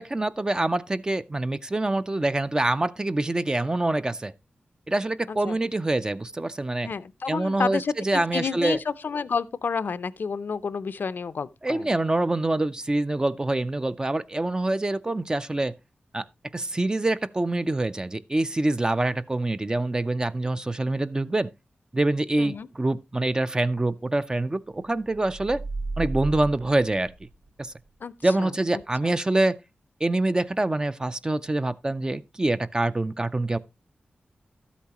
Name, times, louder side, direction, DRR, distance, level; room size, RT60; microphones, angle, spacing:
voice 1, 0.0-4.3 4.9-6.9 7.3-8.8 11.6-15.7 16.1-16.3 16.5-21.5 21.9-25.6 26.0-27.1 27.6-27.7 28.2-29.6 30.0-33.6, right 2 dB, 20° right, 0.4 m, -25 dB
voice 2, 6.8-11.9 22.4-22.7 28.0-28.1 28.4-28.5 29.0-29.2, left 5 dB, 65° left, 0.5 m, -30 dB
sound 1, 25.0-27.7, right 3 dB, 60° right, 0.7 m, -34 dB
12.5 x 8.3 x 2.9 m
wide cardioid pair, 115°, 4 cm